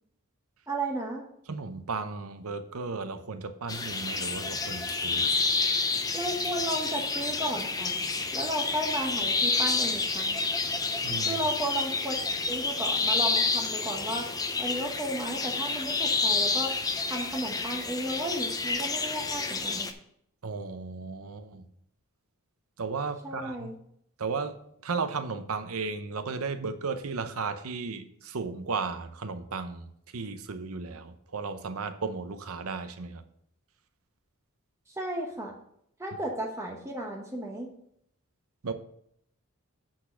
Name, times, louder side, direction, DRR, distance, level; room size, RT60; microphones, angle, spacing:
voice 1, 0.7-1.2 6.1-8.0 8.3-10.3 11.2-14.3 14.6-16.7 17.1-19.9 23.2-23.7 34.9-35.6 36.0-37.7, right 1 dB, 15° right, 1 dB, 1.0 m, -34 dB
voice 2, 1.5-5.3 11.0-11.4 20.4-21.7 22.8-23.7 24.2-24.6 24.8-33.2 38.6-38.7, right 4 dB, 70° right, 10 dB, 0.8 m, -35 dB
sound 1, 3.7-19.9, left 3 dB, 15° left, 0.6 m, -29 dB
8.6 x 4.1 x 6.2 m, 0.71 s
head